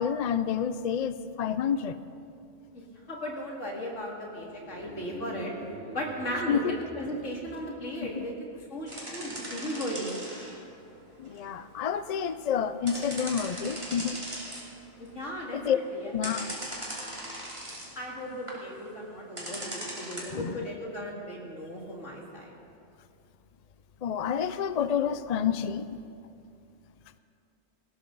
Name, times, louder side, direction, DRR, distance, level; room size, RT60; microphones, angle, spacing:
voice 1, 0.0-2.0 6.5-6.7 8.2-8.3 11.2-14.2 15.5-15.8 16.0-16.5 20.3-20.7 24.0-26.0, left 8 dB, 50° left, 13 dB, 0.5 m, -29 dB
voice 2, 3.1-5.5 5.9-8.3 8.7-10.2 15.0-16.2 18.0-22.6, equal, 80° left, -2 dB, 2.9 m, -36 dB
sound 1, 4.5-8.1, equal, 60° right, 3.8 m, -45 dB
sound 2, 8.9-10.7 11.0-12.3 12.9-14.8 15.1-15.7 16.2-17.9 18.3-18.6 19.4-20.2, right 1 dB, 25° right, 3.0 m, -39 dB
19.0 x 17.0 x 4.0 m, 2.5 s
omnidirectional pair, 1.2 m